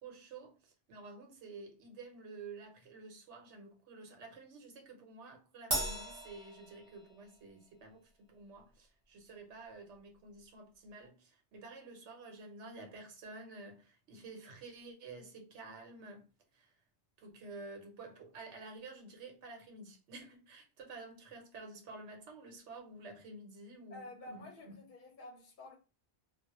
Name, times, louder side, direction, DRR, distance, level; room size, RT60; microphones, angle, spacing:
voice 1, 0.0-16.3 16.5-16.7 17.2-24.5, right 3 dB, 80° right, 1.0 m, -51 dB
Crash cymbal, 5.7-7.4, right 1 dB, 25° right, 0.6 m, -38 dB
voice 2, 23.9-25.7, left 2 dB, 55° left, 0.7 m, -50 dB
2.2 x 2.1 x 2.8 m
omnidirectional pair, 1.2 m